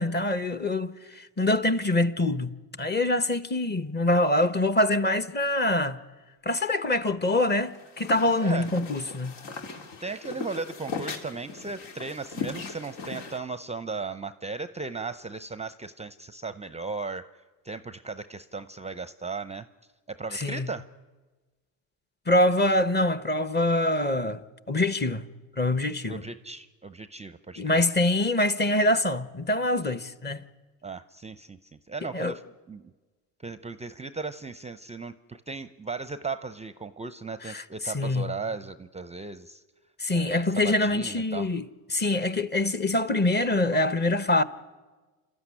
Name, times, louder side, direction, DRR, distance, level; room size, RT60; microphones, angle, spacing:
voice 1, 0.0-2.5 2.8-6.0 6.4-9.3 20.3-20.7 22.3-25.2 25.6-26.2 27.6-30.4 32.1-32.4 37.4-37.6 37.9-38.3 40.0-41.6 41.9-44.4, left 1 dB, 25° left, 1.1 m, -25 dB
sound 1, 7.6-13.4, left 5 dB, 75° left, 2.7 m, -38 dB
voice 2, 10.0-17.3 17.6-19.7 20.1-20.9 26.1-27.8 30.8-32.4 32.7-32.9 33.4-39.6 40.1-41.5, right 4 dB, 15° right, 0.6 m, -36 dB
28.5 x 13.0 x 9.9 m
supercardioid pair, 80°, 41 cm